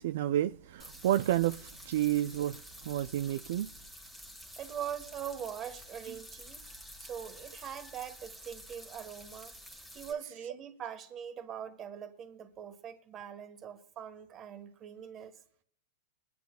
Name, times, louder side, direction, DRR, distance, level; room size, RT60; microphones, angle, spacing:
voice 1, 0.0-3.7, right 13 dB, 60° right, 0.3 m, -30 dB
sound 1, 0.8-10.1, equal, ahead, 1.3 m, -50 dB
voice 2, 4.6-6.6 7.0-9.5 9.9-15.3, right 9 dB, 25° right, 1.2 m, -42 dB
22.5 x 9.3 x 2.2 m
supercardioid pair, 155°, 0 cm